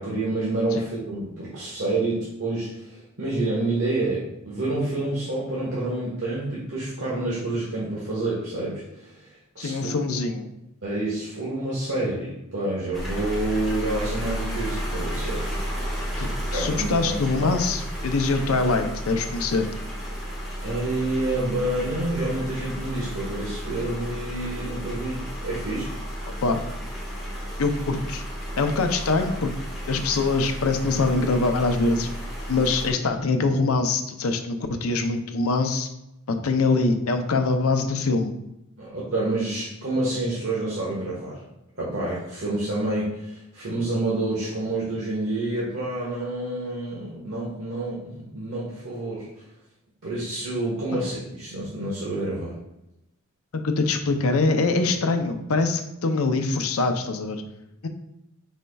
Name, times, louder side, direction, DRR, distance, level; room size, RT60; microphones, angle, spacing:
voice 1, 0.0-10.2 10.8-15.5 16.5-17.5 20.2-20.3 20.6-25.9 38.8-41.4 41.8-49.3 50.0-52.6, right 2 dB, 70° right, -7 dB, 1.2 m, -28 dB
voice 2, 9.6-10.5 16.2-19.7 26.4-26.6 27.6-28.2 28.6-29.5 29.9-32.1 32.5-35.9 36.3-38.3 50.9-51.0 53.6-57.4 57.8-57.9, left 3 dB, 75° left, 6 dB, 0.5 m, -23 dB
sound 1, 12.9-32.9, equal, ahead, 1.5 m, -32 dB
5.1 x 4.2 x 2.3 m, 0.89 s
head